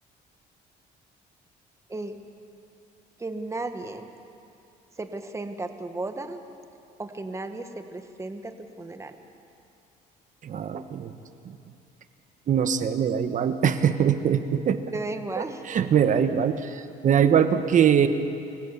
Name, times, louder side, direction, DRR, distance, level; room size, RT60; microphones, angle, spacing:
voice 1, 3.2-4.0 5.0-6.4 7.0-9.2 14.9-15.7, right 2 dB, 15° right, 7 dB, 1.5 m, -34 dB
voice 2, 10.4-11.1 11.4-11.6 12.5-14.8 15.4-18.1, right 8 dB, 50° right, 9 dB, 1.2 m, -22 dB
25.0 x 16.5 x 7.2 m, 2.6 s
cardioid pair, 110°, 17 cm